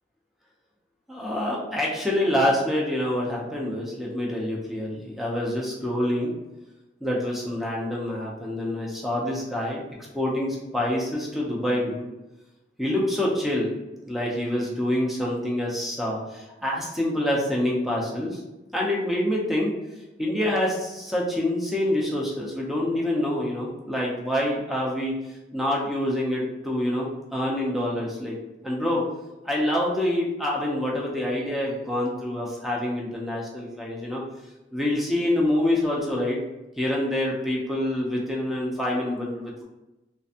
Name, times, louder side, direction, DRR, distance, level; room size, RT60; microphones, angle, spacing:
voice 1, 1.1-6.3 7.0-9.8 10.1-12.1 12.8-13.7 14.1-18.4 18.7-19.7 20.2-25.2 25.5-28.4 28.6-29.0 29.4-34.2 34.7-36.4 36.8-39.6, left 1 dB, ahead, -3 dB, 0.7 m, -26 dB
3.3 x 3.1 x 2.8 m, 1.0 s
head